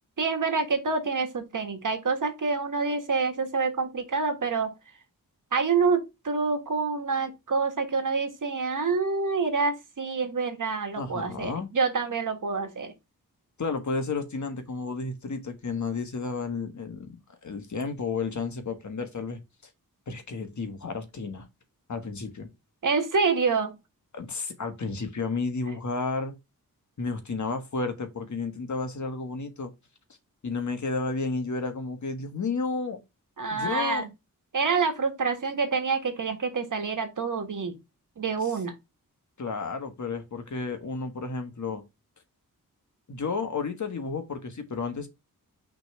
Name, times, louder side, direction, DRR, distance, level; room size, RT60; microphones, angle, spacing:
voice 1, 0.2-4.7 5.5-12.9 22.8-23.8 33.4-34.1 34.5-37.8 38.2-38.7, right 4 dB, 65° right, 1.7 m, -27 dB
voice 2, 11.0-11.7 13.6-17.1 17.4-19.4 20.1-21.5 21.9-22.5 24.1-26.3 27.0-29.7 30.4-33.0 33.5-34.1 38.4-38.6 39.4-41.8 43.1-45.1, left 4 dB, 55° left, 1.5 m, -32 dB
5.9 x 3.4 x 4.7 m
wide cardioid pair, 110°, 34 cm